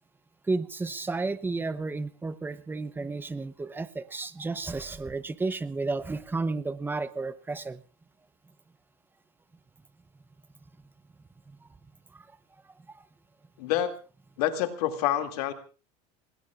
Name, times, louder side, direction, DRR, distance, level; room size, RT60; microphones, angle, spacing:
voice 1, 0.4-7.8 11.5-11.7 12.1-12.3 12.9-13.1, right 3 dB, 10° right, 13 dB, 0.8 m, -32 dB
voice 2, 13.6-13.9 14.4-15.5, left 11 dB, 85° left, 5 dB, 2.5 m, -27 dB
27.5 x 20.5 x 2.5 m, 0.36 s
supercardioid pair, 140°, 19 cm